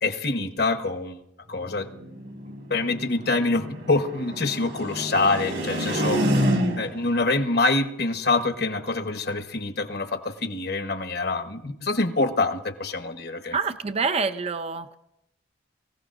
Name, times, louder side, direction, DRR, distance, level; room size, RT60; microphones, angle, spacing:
voice 1, 0.0-1.2 1.5-1.9 2.7-6.3 6.7-13.6, left 3 dB, 55° left, 7 dB, 1.1 m, -25 dB
sound 1, 1.6-7.1, equal, 60° right, 1.8 m, -28 dB
voice 2, 13.5-14.9, right 5 dB, 30° right, 10 dB, 0.5 m, -26 dB
24.0 x 16.0 x 2.6 m, 0.81 s
head